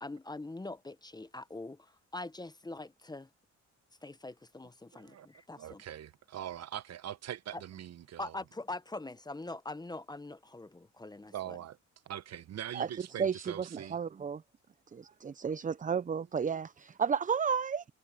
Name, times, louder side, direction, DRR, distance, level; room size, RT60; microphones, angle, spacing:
voice 1, 0.0-3.3 4.0-5.8 7.5-7.6 8.2-11.6, left 2 dB, 15° left, 0.9 m, -43 dB
voice 2, 4.9-5.3 5.6-8.4 11.3-11.8 12.1-14.0, right 11 dB, 60° right, 0.9 m, -42 dB
voice 3, 12.7-14.4 14.9-17.8, right 6 dB, 25° right, 0.6 m, -33 dB
cardioid pair, 90°, 30 cm